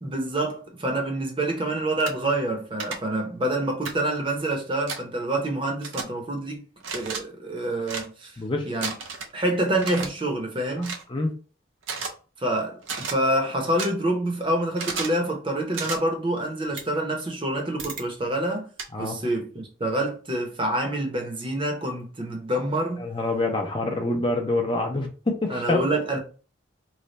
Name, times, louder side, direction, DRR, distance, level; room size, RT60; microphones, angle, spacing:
voice 1, 0.0-6.6 6.9-8.4 8.7-8.9 9.3-11.0 12.4-18.7 19.0-23.1 25.5-26.2, right 1 dB, 25° right, 0.7 m, -27 dB
sound 1, 2.0-2.1 2.8-3.0 3.8-4.0 4.9-5.0 5.8-6.0 6.8-7.2 7.8-8.1 8.8-9.3 9.8-10.1 10.8-11.0 11.8-12.1 12.8-13.1 13.8-13.9 14.8-15.2 15.7-16.0 16.8-16.9 17.8-18.0 18.8-18.9, right 4 dB, 85° right, 0.7 m, -32 dB
voice 2, 8.4-8.7 11.1-11.3 18.9-19.2 23.0-25.9, left 2 dB, 25° left, 0.5 m, -26 dB
3.2 x 2.2 x 3.9 m
head